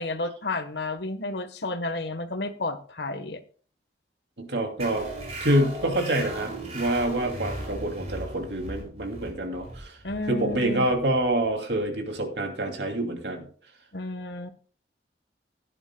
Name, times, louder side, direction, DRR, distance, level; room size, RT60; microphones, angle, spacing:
voice 1, 0.0-3.4 10.0-10.8 13.9-14.5, left 2 dB, 70° left, 9 dB, 1.2 m, -31 dB
voice 2, 4.4-5.1 5.4-9.9 10.3-13.5, right 1 dB, 75° right, 4 dB, 2.5 m, -27 dB
sound 1, 4.8-11.9, right 1 dB, 35° right, 4.8 m, -38 dB
16.5 x 10.0 x 2.2 m, 0.43 s
head